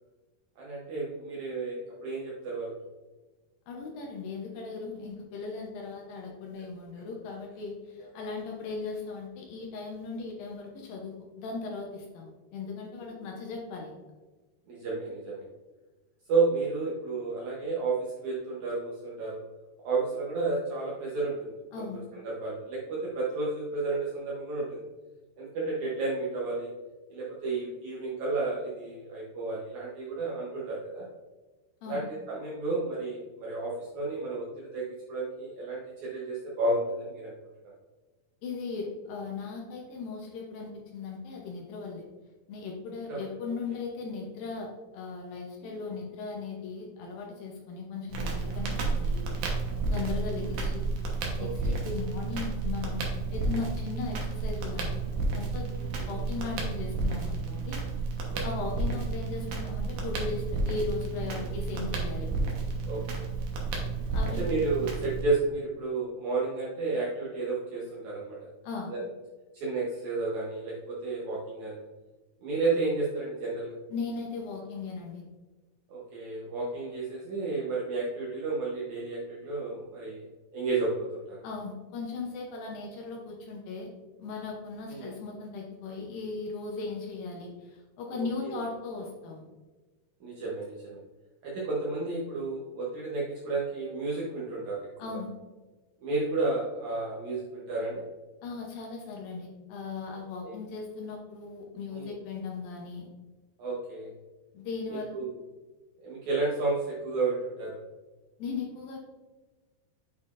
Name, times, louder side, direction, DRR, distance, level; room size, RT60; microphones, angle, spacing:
voice 1, 0.6-2.7 8.0-8.1 14.7-15.4 16.3-19.4 19.8-21.8 22.2-24.9 25.4-26.7 27.1-31.1 31.9-37.3 37.6-37.7 43.1-43.2 45.6-45.9 51.4-51.8 55.9-56.2 58.3-58.4 61.3-61.5 62.8-63.3 64.4-68.5 68.9-69.0 69.5-71.8 72.4-73.8 75.9-80.2 80.5-81.4 84.9-85.1 88.1-88.6 90.2-91.0 91.4-94.8 96.0-98.1 100.4-100.5 101.9-102.1 103.6-104.1 104.9-105.3 106.0-107.8, right 3 dB, 80° right, -6 dB, 1.6 m, -32 dB
voice 2, 3.7-14.0 21.7-22.1 31.8-32.1 38.4-42.0 42.5-49.2 49.9-50.9 51.4-53.0 53.3-54.9 55.3-55.6 56.1-57.8 58.4-62.3 64.1-64.5 68.6-68.9 73.9-75.2 81.4-83.9 84.2-89.5 95.0-95.3 98.4-103.1 104.5-105.2 108.4-109.0, left 4 dB, 75° left, 0 dB, 2.2 m, -37 dB
Crackle, 48.1-65.2, right 3 dB, 65° right, 2.2 m, -31 dB
8.5 x 5.7 x 2.5 m, 1.2 s
omnidirectional pair, 4.9 m